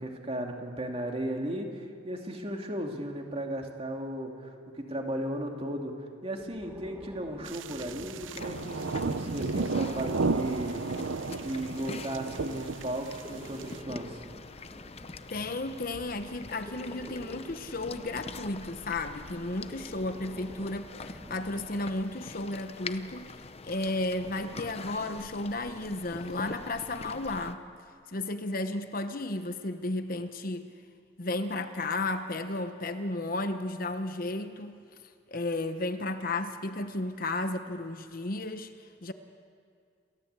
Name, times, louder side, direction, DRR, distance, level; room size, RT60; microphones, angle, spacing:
voice 1, 0.0-10.8 11.3-14.2, right 1 dB, 30° right, 2 dB, 2.5 m, -36 dB
Breathing, 6.4-8.8 9.6-11.9 13.0-15.9 16.5-18.7 19.6-21.9, equal, 15° right, 1.7 m, -48 dB
sound 1, 7.5-13.8, right 3 dB, 80° right, 0.7 m, -33 dB
sound 2, 8.3-27.6, left 3 dB, 30° left, 0.7 m, -45 dB
voice 2, 15.3-23.3 23.6-27.6 28.1-30.7 31.2-34.8 35.3-39.1, left 2 dB, 45° left, 8 dB, 1.1 m, -33 dB
28.0 x 15.5 x 8.2 m, 2.2 s
head